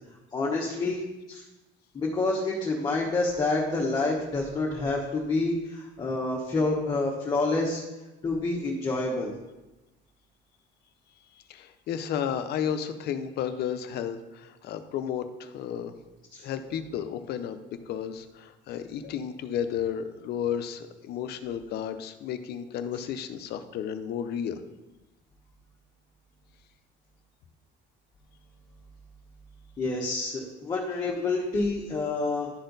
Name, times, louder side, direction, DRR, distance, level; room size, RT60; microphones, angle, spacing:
voice 1, 0.3-1.0 1.3-1.4 1.9-7.8 8.2-9.3 16.3-16.4 29.8-32.5, left 3 dB, 20° left, -3 dB, 1.0 m, -28 dB
voice 2, 11.5-15.9 16.4-24.6, left 8 dB, 55° left, 10 dB, 0.6 m, -33 dB
11.5 x 4.3 x 3.9 m, 1.0 s
cardioid pair, 165°, 20 cm